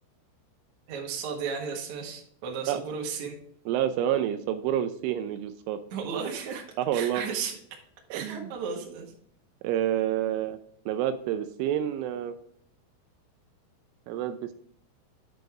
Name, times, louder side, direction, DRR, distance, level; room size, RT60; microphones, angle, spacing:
voice 1, 0.9-3.4 5.9-6.6 6.9-7.5 8.1-9.1, right 6 dB, 65° right, -1 dB, 1.8 m, -34 dB
voice 2, 3.7-5.8 6.8-7.2 8.1-8.5 9.6-10.6 10.9-12.3 14.1-14.4, right 11 dB, 85° right, 9 dB, 2.9 m, -28 dB
9.1 x 5.2 x 3.5 m, 0.63 s
omnidirectional pair, 5.8 m